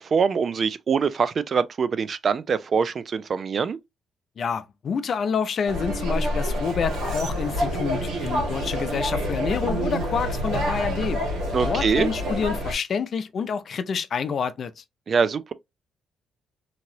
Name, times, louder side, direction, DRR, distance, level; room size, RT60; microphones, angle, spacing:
voice 1, 0.0-3.8 11.5-12.1 15.1-15.5, right 6 dB, 45° right, 0.4 m, -24 dB
voice 2, 4.4-11.2 11.6-14.8, left 6 dB, 55° left, 0.4 m, -28 dB
sound 1, 5.7-12.7, equal, 85° right, 1.6 m, -27 dB
2.9 x 2.8 x 2.6 m
cardioid pair, 90°, 0 cm